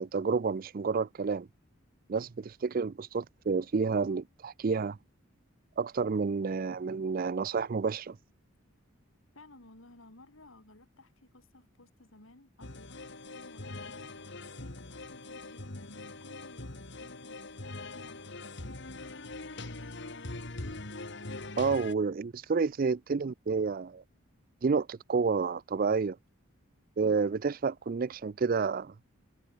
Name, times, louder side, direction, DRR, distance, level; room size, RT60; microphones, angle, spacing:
voice 1, 0.0-1.5 2.1-5.0 5.8-8.2 21.6-24.0 24.6-26.2 27.0-28.9, right 5 dB, 45° right, 0.4 m, -30 dB
voice 2, 9.3-19.0, left 1 dB, 75° left, 3.9 m, -57 dB
sound 1, 12.6-21.9, left 2 dB, 55° left, 2.1 m, -42 dB
head